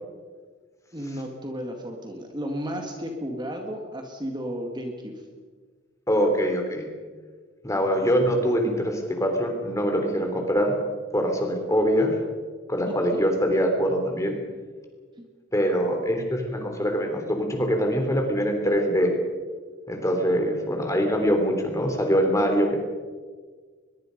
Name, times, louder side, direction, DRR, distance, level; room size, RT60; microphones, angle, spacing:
voice 1, 0.9-5.2 13.1-13.2 15.2-15.3, equal, 20° right, 2 dB, 2.0 m, -33 dB
voice 2, 6.1-6.9 7.6-10.8 11.1-12.1 12.7-14.4 15.5-19.1 19.9-22.8, equal, 15° left, 4 dB, 3.5 m, -23 dB
22.5 x 22.0 x 5.3 m, 1.5 s
head